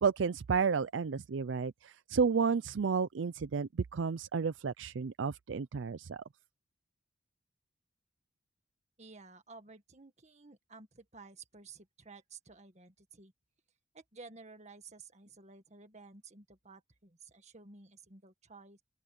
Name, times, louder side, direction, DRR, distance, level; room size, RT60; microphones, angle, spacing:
voice 1, 0.0-6.2, right 5 dB, 70° right, 0.5 m, -32 dB
voice 2, 9.0-13.3 13.9-18.8, right 4 dB, 35° right, 1.8 m, -54 dB
open air
head